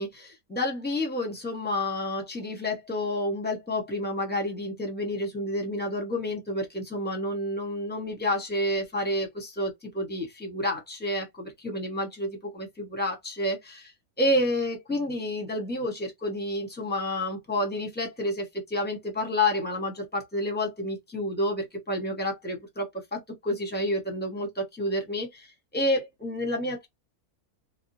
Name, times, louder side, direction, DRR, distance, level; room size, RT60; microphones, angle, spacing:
voice 1, 0.0-13.9 14.2-25.5 25.7-26.9, left 1 dB, 10° left, 0.8 m, -29 dB
2.8 x 2.1 x 2.6 m
omnidirectional pair, 1.6 m